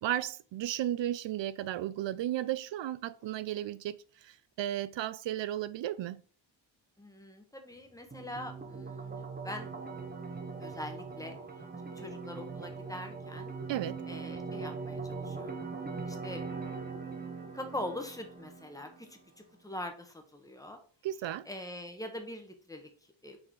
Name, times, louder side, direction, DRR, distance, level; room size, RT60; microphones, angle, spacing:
voice 1, 0.0-6.2 13.7-14.0 21.0-21.5, right 12 dB, 70° right, 0.6 m, -34 dB
voice 2, 7.0-9.7 10.6-11.4 11.8-13.5 14.1-15.6 16.1-16.5 17.2-20.8 21.5-22.9 23.2-23.4, left 1 dB, 10° left, 1.0 m, -43 dB
sound 1, 8.1-19.1, right 4 dB, 20° right, 0.8 m, -41 dB
6.1 x 3.8 x 4.7 m
wide cardioid pair, 160°, 46 cm